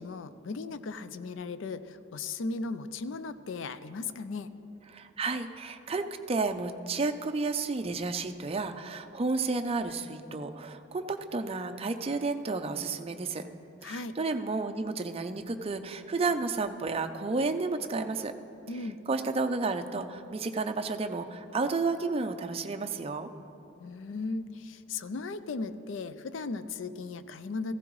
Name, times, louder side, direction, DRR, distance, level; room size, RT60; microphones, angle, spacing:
voice 1, 0.0-4.5 13.8-14.1 18.7-19.0 23.8-27.7, left 3 dB, 70° left, 13 dB, 0.4 m, -37 dB
voice 2, 4.9-13.4 13.8-18.3 19.1-23.3, right 3 dB, 30° right, 7 dB, 0.5 m, -31 dB
15.0 x 15.0 x 3.1 m, 2.9 s
head